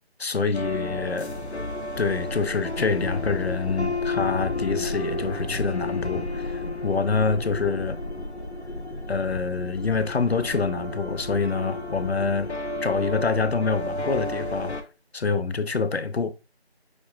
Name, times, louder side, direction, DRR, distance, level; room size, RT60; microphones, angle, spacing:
voice 1, 0.2-1.3 2.0-8.0 9.1-12.5 12.8-14.8 15.1-16.3, left 4 dB, 75° left, 0.7 m, -26 dB
sound 1, 0.5-14.8, left 2 dB, 90° left, 1.0 m, -32 dB
6.2 x 3.1 x 2.3 m
figure-of-eight pair, 170°, 32 cm